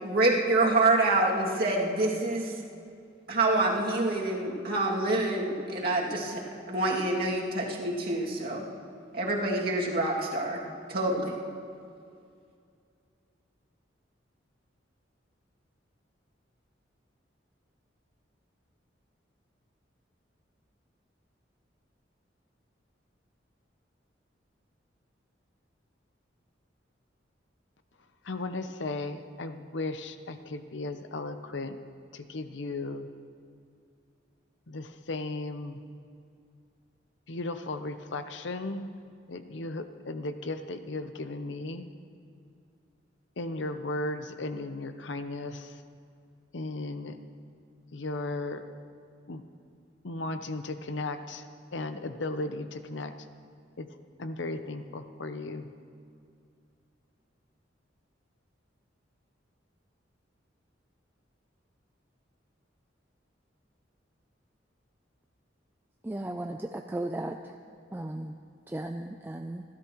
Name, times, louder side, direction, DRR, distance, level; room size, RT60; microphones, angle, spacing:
voice 1, 0.0-2.5 3.3-6.4 6.7-8.7 9.1-10.6 10.9-11.4, right 2 dB, 55° right, -3 dB, 2.4 m, -26 dB
voice 2, 28.2-31.8 32.1-33.1 34.7-35.8 37.3-38.9 39.3-41.9 43.4-45.8 46.5-47.2 47.9-48.6 49.3-49.4 50.0-53.1 53.8-53.9 54.2-55.7, left 2 dB, 70° left, 9 dB, 0.8 m, -35 dB
voice 3, 66.0-67.6 67.9-68.4 68.7-69.6, right 1 dB, 10° right, 4 dB, 0.4 m, -36 dB
27.5 x 12.5 x 3.1 m, 2.4 s
head